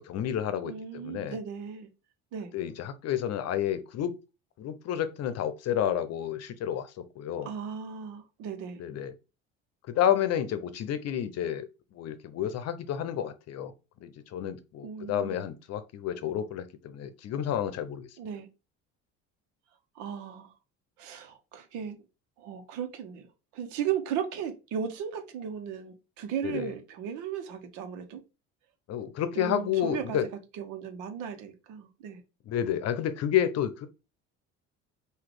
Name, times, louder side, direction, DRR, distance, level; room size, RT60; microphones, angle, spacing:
voice 1, 0.0-1.4 2.5-4.1 4.6-7.5 8.8-9.1 9.9-11.7 11.9-13.7 14.0-18.1 26.4-26.7 28.9-30.3 32.5-33.9, left 10 dB, 55° left, 0.8 m, -30 dB
voice 2, 0.6-1.9 2.3-2.5 7.4-8.8 14.8-15.4 18.2-18.5 19.9-20.5 21.0-22.0 22.4-23.3 23.5-28.2 29.4-30.2 30.5-32.2, right 8 dB, 75° right, 1.2 m, -36 dB
4.0 x 2.7 x 4.8 m
supercardioid pair, 95°, 30 cm